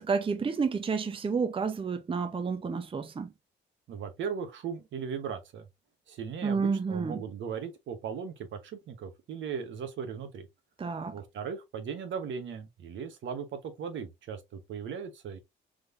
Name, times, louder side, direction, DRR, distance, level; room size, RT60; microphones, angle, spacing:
voice 1, 0.0-3.3 6.4-7.2 10.8-11.2, right 5 dB, 25° right, 0.7 m, -30 dB
voice 2, 3.9-5.7 6.1-10.5 11.1-15.4, right 6 dB, 70° right, 1.1 m, -38 dB
3.8 x 3.2 x 2.5 m
cardioid pair, 90°, 20 cm